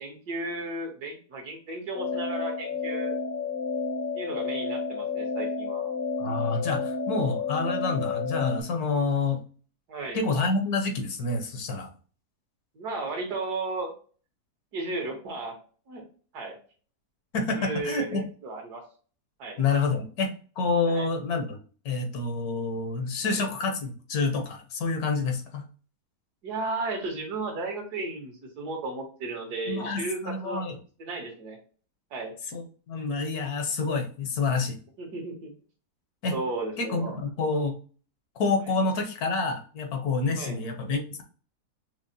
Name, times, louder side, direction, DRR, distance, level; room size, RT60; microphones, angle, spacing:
voice 1, 0.0-3.2 4.1-5.9 9.9-10.2 12.7-13.9 14.7-15.5 15.9-16.0 16.3-16.5 17.5-18.8 19.4-19.6 20.9-21.1 23.3-23.5 26.4-30.6 31.0-31.6 32.1-32.3 35.0-35.5 36.3-37.2 40.4-40.6, right 3 dB, 75° right, 1 dB, 1.7 m, -34 dB
sound 1, 1.9-8.6, left 4 dB, 50° left, 0.7 m, -31 dB
voice 2, 6.2-9.4 10.1-11.9 17.3-18.2 19.6-20.3 20.6-21.6 21.8-25.6 29.7-30.8 32.5-34.8 36.2-36.4 36.8-37.8 38.4-41.2, left 4 dB, 70° left, 4 dB, 1.3 m, -28 dB
6.2 x 2.1 x 2.6 m, 0.40 s
omnidirectional pair, 1.7 m